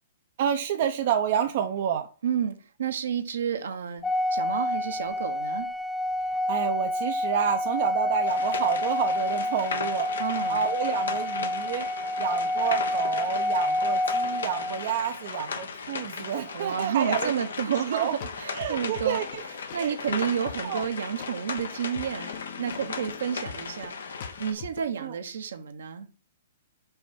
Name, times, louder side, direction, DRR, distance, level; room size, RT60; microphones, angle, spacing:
voice 1, 0.4-2.1 6.3-10.1 10.5-11.9 12.2-17.3 17.9-18.1 18.5-19.4 19.8-20.2 20.6-20.8 25.0-25.1, right 8 dB, 55° right, 0.6 m, -29 dB
voice 2, 2.2-4.0 4.3-5.7 10.2-10.7 16.5-18.1 18.4-19.2 19.7-22.3 22.6-24.1 24.4-26.1, right 8 dB, 80° right, 1.1 m, -30 dB
Organ, 4.0-14.9, left 1 dB, 5° left, 0.3 m, -28 dB
sound 1, 8.3-24.5, left 5 dB, 85° left, 1.1 m, -37 dB
sound 2, 17.8-24.9, left 7 dB, 55° left, 0.9 m, -44 dB
5.5 x 4.5 x 4.2 m
hypercardioid pair, 130°, 0 cm